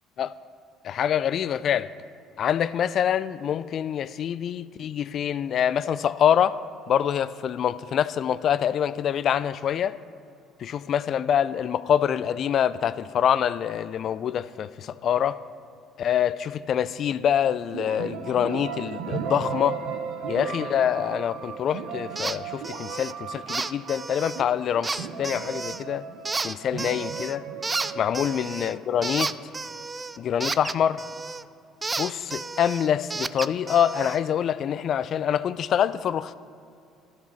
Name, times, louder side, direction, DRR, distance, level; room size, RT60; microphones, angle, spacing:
voice 1, 0.8-1.9 2.4-6.5 6.9-9.9 10.6-15.4 16.0-19.8 20.3-26.1 26.4-27.4 28.0-29.3 30.2-31.0 32.0-36.3, left 9 dB, 55° left, 0.3 m, -25 dB
sound 1, 17.7-29.4, right 6 dB, 70° right, 0.7 m, -36 dB
sound 2, 22.2-22.4 22.6-23.1 23.5-24.4 24.8-25.8 26.3-27.4 27.6-31.4 31.8-34.2, right 3 dB, 25° right, 0.3 m, -32 dB
12.5 x 5.7 x 4.4 m
hypercardioid pair, 60°, 0 cm